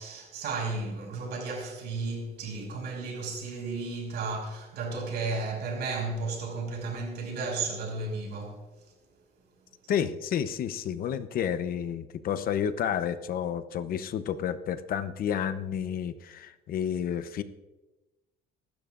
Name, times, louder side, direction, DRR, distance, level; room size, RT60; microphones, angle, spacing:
voice 1, 0.0-8.6 9.8-9.9, right 3 dB, 75° right, 5.5 m, -33 dB
voice 2, 9.9-17.4, left 8 dB, 60° left, 0.8 m, -30 dB
24.5 x 12.5 x 2.5 m
cardioid pair, 145°, 17 cm